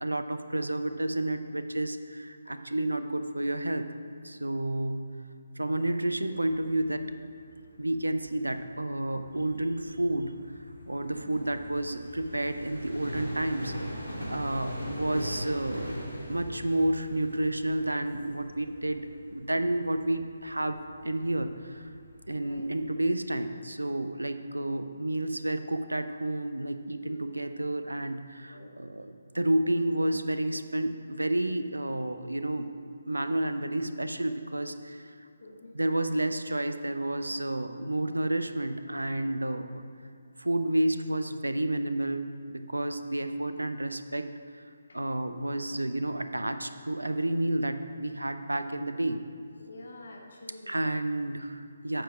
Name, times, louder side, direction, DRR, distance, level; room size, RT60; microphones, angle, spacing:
voice 1, 0.0-3.9 4.2-5.1 5.6-7.0 7.8-10.3 10.9-13.7 14.3-15.9 16.3-20.8 21.0-21.9 22.3-35.1 35.7-39.8 40.4-42.2 42.5-44.3 44.9-49.2 50.7-52.0, right 1 dB, 80° right, 9 dB, 0.5 m, -30 dB
sound 1, 6.2-22.8, equal, 85° left, 2.2 m, -42 dB
voice 2, 11.1-11.4 22.3-22.7 27.1-27.4 28.5-28.7 35.4-35.7 44.9-45.0 49.6-50.7, left 2 dB, 55° left, 0 dB, 1.0 m, -48 dB
8.9 x 4.9 x 6.0 m, 2.4 s
figure-of-eight pair, 145°, 0 cm